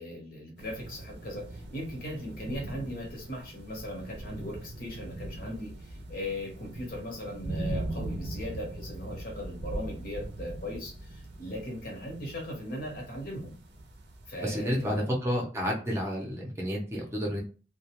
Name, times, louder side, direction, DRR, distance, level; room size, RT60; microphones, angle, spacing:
voice 1, 0.0-13.5 14.3-15.1, left 1 dB, 55° left, 0 dB, 1.0 m, -38 dB
sound 1, 0.6-15.0, right 2 dB, 65° right, 0.5 m, -40 dB
voice 2, 14.4-17.4, equal, 15° right, -2 dB, 0.6 m, -30 dB
2.2 x 2.2 x 2.9 m, 0.36 s
head